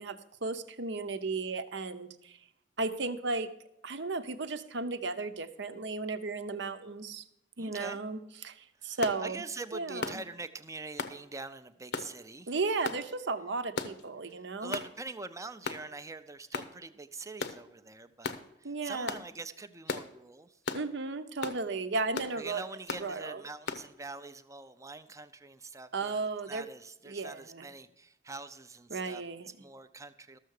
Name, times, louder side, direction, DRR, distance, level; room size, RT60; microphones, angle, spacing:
voice 1, 0.0-2.4 2.8-3.5 3.8-7.2 7.6-9.4 9.7-10.2 12.5-14.8 18.6-19.2 20.7-22.6 23.0-23.4 25.9-26.6 27.1-27.7 28.9-29.5, right 3 dB, 65° right, 10 dB, 0.8 m, -35 dB
voice 2, 7.6-8.0 8.8-12.5 14.3-20.6 22.4-29.2 29.6-30.4, right 3 dB, 15° right, 11 dB, 0.5 m, -44 dB
sound 1, 9.0-9.2 10.0-10.2 11.0-11.2 11.9-12.1 12.8-13.0 13.8-14.0 14.7-14.9 15.6-15.8 16.5-16.7 17.4-17.6 18.2-18.4 19.1-19.3 19.9-20.1 20.7-20.9 21.4-21.6 22.1-22.3 22.9-23.1 23.7-23.8, left 4 dB, 65° left, 0.8 m, -36 dB
13.0 x 6.8 x 6.5 m, 0.82 s
head